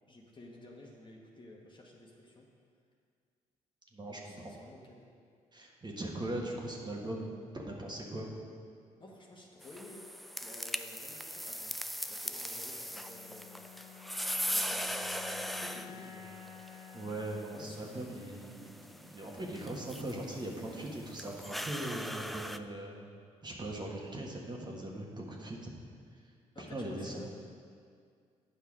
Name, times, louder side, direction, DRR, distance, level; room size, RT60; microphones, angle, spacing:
voice 1, 0.1-2.5 4.1-5.1 9.0-10.1 10.4-13.6 14.5-16.4 17.5-17.8 26.5-27.3, left 1 dB, 30° left, -1 dB, 1.4 m, -53 dB
voice 2, 3.9-4.5 5.5-7.2 7.5-8.3 16.9-18.7 19.0-23.1 23.4-25.7 26.6-27.3, right 1 dB, 30° right, -1 dB, 1.5 m, -40 dB
sound 1, 9.6-22.6, equal, ahead, 0.4 m, -40 dB
sound 2, 12.8-19.2, left 8 dB, 55° left, 1.0 m, -51 dB
8.9 x 5.6 x 4.9 m, 2.2 s
hypercardioid pair, 50°, 15 cm